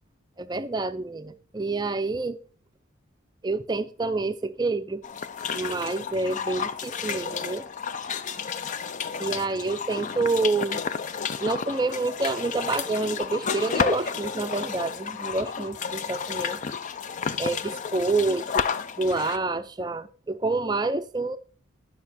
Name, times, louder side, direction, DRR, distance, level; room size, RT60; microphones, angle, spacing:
voice 1, 0.4-2.4 3.4-5.0 5.5-7.7 9.2-10.8 11.4-16.6 17.4-18.6 19.0-21.4, right 3 dB, 20° right, 0.5 m, -28 dB
sound 1, 5.0-19.4, left 6 dB, 35° left, 0.4 m, -31 dB
11.0 x 6.1 x 4.2 m
head